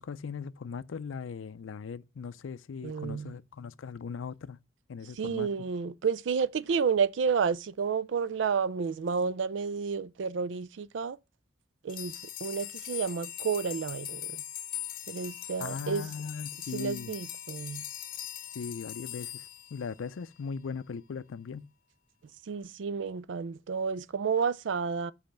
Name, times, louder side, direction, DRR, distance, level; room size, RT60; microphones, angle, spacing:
voice 1, 0.0-4.6 4.9-5.5 15.6-17.1 18.5-21.7, left 5 dB, 90° left, 0.4 m, -39 dB
voice 2, 2.8-3.3 5.2-11.2 11.8-12.1 12.4-14.4 15.1-16.1 16.7-17.8 22.5-25.1, right 6 dB, 70° right, 0.4 m, -30 dB
sound 1, 11.9-20.4, left 12 dB, 50° left, 0.7 m, -41 dB
5.3 x 5.0 x 5.7 m
head